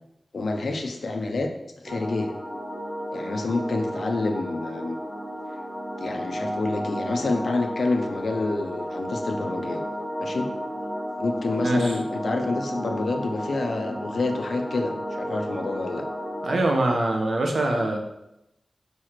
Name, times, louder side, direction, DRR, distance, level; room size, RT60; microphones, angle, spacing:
voice 1, 0.3-1.5 1.8-2.3 3.1-5.0 6.0-9.8 10.2-10.5 11.2-16.0, left 3 dB, 80° left, 4 dB, 0.9 m, -28 dB
sound 1, 1.9-16.6, equal, 15° right, 2.0 m, -33 dB
voice 2, 16.4-18.0, right 2 dB, 80° right, 2 dB, 1.3 m, -23 dB
5.5 x 4.9 x 5.9 m, 0.87 s
wide cardioid pair, 80°, 0 cm